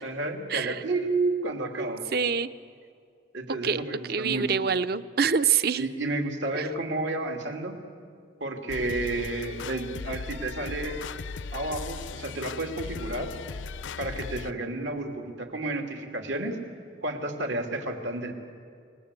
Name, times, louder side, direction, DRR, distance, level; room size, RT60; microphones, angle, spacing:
voice 1, 0.0-2.0 3.3-4.6 5.8-7.7 8.4-11.0 11.5-13.3 14.0-16.6 17.0-18.3, right 2 dB, 80° right, 4 dB, 2.8 m, -31 dB
voice 2, 1.8-2.5 3.6-3.8 4.1-5.8 6.5-6.7, right 6 dB, 55° right, 14 dB, 0.7 m, -26 dB
sound 1, 8.7-14.5, left 4 dB, 90° left, 0.5 m, -37 dB
29.0 x 19.0 x 8.3 m, 2.2 s
head